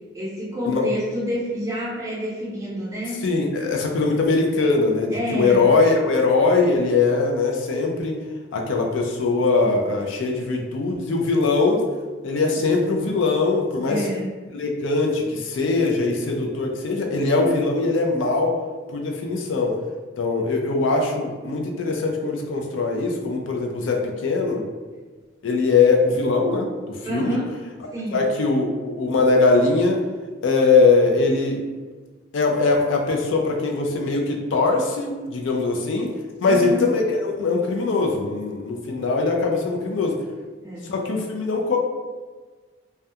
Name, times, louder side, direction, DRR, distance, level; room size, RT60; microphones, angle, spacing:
voice 1, 0.1-3.3 5.1-5.7 13.9-14.3 27.0-27.5 27.9-28.2 36.5-36.9 40.6-40.9, equal, 20° right, -7 dB, 0.7 m, -28 dB
voice 2, 3.2-8.2 8.5-11.8 12.2-14.1 14.5-18.6 18.9-19.8 20.2-24.6 25.4-27.4 28.1-30.1 30.4-31.6 32.3-36.1 36.4-40.2 40.8-41.8, left 3 dB, 90° left, 1 dB, 0.4 m, -21 dB
2.2 x 2.2 x 2.7 m, 1.4 s
head